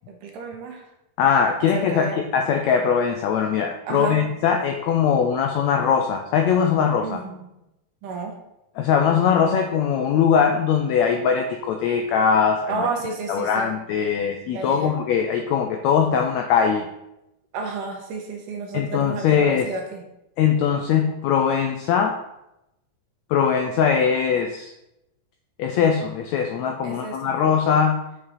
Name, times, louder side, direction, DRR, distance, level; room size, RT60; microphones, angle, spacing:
voice 1, 0.1-0.9 1.6-2.2 3.9-4.4 7.0-7.4 8.0-8.4 9.4-9.7 12.7-13.7 14.5-15.0 17.5-20.0 26.8-27.6, right 4 dB, 80° right, 2 dB, 2.7 m, -31 dB
voice 2, 1.2-7.2 8.8-12.9 13.3-16.9 18.7-19.7 20.4-22.2 23.3-24.7 25.6-28.0, left 7 dB, 85° left, 5 dB, 1.5 m, -21 dB
7.2 x 6.3 x 4.1 m, 0.89 s
omnidirectional pair, 3.7 m